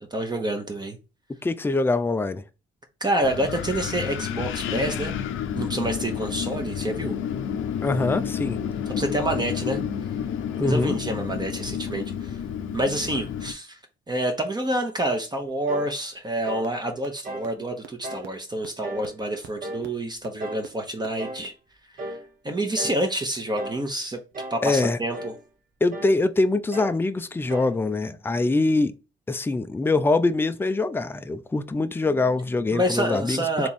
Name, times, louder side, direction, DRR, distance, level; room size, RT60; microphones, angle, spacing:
voice 1, 0.1-1.0 3.0-5.1 5.5-7.2 9.0-9.8 10.5-12.4 12.7-13.8 14.1-21.5 22.0-22.2 22.4-24.2 24.5-25.3 32.7-33.7, right 1 dB, 20° right, 0.9 m, -28 dB
voice 2, 1.4-2.4 7.8-8.6 10.6-10.9 24.6-25.0 25.8-28.9 29.3-33.7, left 3 dB, 10° left, 0.4 m, -23 dB
Wind, 3.2-13.5, left 8 dB, 85° left, 0.6 m, -30 dB
sound 1, 15.7-16.0 16.4-16.7 17.2-17.5 18.0-18.3 18.8-19.1 19.6-19.9 20.4-20.7 21.2-21.5 22.0-22.3 22.8-23.1 23.6-23.9 24.3-24.7 25.1-25.4 25.9-26.2 26.7-27.0 27.5-27.8, right 1 dB, 45° right, 1.0 m, -36 dB
sound 2, 16.6-16.7 17.0-17.1 17.4-17.5 17.8-17.9 18.2-18.3 18.6-18.7 19.0-19.1 19.4-19.5 19.8-19.9 20.2-20.3 20.6-20.7 21.0-21.1 21.4-21.5, right 9 dB, 85° right, 0.8 m, -41 dB
3.5 x 3.0 x 4.1 m
cardioid pair, 90°, 20 cm